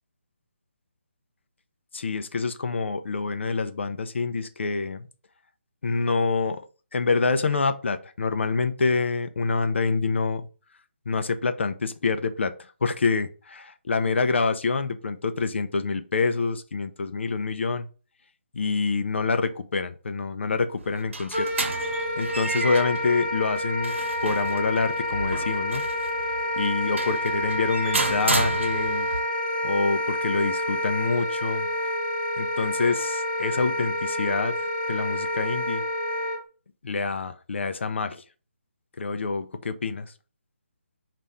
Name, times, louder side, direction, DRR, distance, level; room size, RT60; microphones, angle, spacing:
voice 1, 1.9-5.1 5.8-6.6 6.9-10.5 11.1-12.5 12.8-17.9 18.5-21.5 22.2-23.9 24.2-25.8 26.6-29.1 29.6-31.7 32.4-34.5 34.9-35.8 36.8-38.2 39.0-40.1, left 4 dB, 65° left, 9 dB, 0.5 m, -26 dB
sound 1, 20.8-29.2, right 3 dB, 75° right, 0.9 m, -32 dB
Wind instrument woodwind instrument, 21.3-36.4, left 1 dB, 20° left, 1.1 m, -28 dB
4.1 x 2.5 x 3.4 m, 0.36 s
hypercardioid pair, 160°, 7 cm